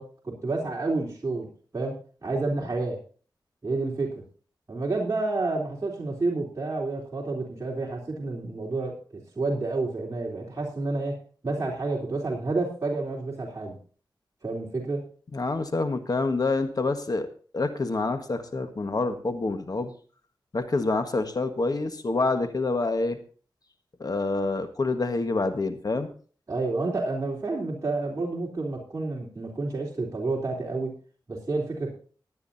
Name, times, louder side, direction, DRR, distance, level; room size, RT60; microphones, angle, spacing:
voice 1, 0.0-1.5 1.7-2.0 2.2-3.0 3.6-4.2 4.7-11.1 11.4-13.8 14.4-15.0 26.5-30.9 31.3-31.9, right 3 dB, 40° right, -3 dB, 3.7 m, -29 dB
voice 2, 15.3-17.3 17.5-19.9 20.5-23.2 24.0-26.1, left 3 dB, 50° left, 8 dB, 1.5 m, -27 dB
19.5 x 9.7 x 2.7 m, 0.41 s
wide cardioid pair, 75°, 8 cm